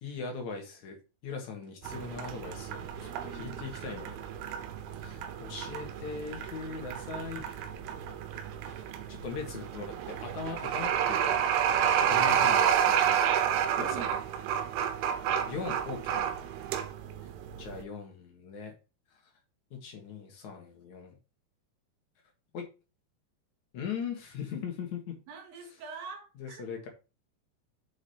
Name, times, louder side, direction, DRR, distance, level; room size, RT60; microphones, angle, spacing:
voice 1, 0.0-1.0 1.2-4.2 5.0-7.4 9.1-11.4 12.0-13.2 13.7-14.1 15.5-16.2 17.6-18.7 19.7-21.2 22.5-22.6 23.7-25.2 26.4-26.9, left 5 dB, 60° left, 2.1 m, -39 dB
sound 1, 1.8-17.8, right 9 dB, 85° right, 3.2 m, -30 dB
voice 2, 3.0-3.7 13.8-14.6 16.1-16.3 25.3-26.7, right 6 dB, 65° right, 3.3 m, -46 dB
7.4 x 5.0 x 4.2 m
omnidirectional pair, 5.5 m